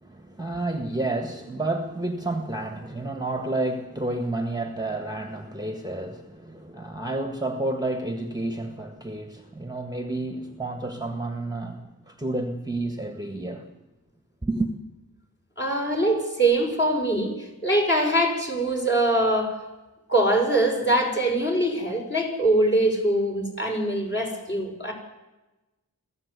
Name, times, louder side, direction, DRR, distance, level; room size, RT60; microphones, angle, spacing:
voice 1, 0.0-13.7 14.4-14.7, right 2 dB, 10° right, 1.7 m, -30 dB
voice 2, 15.6-19.6 20.1-24.9, right 1 dB, 30° left, 5.7 m, -23 dB
23.5 x 14.5 x 8.4 m
wide cardioid pair, 55°, 36 cm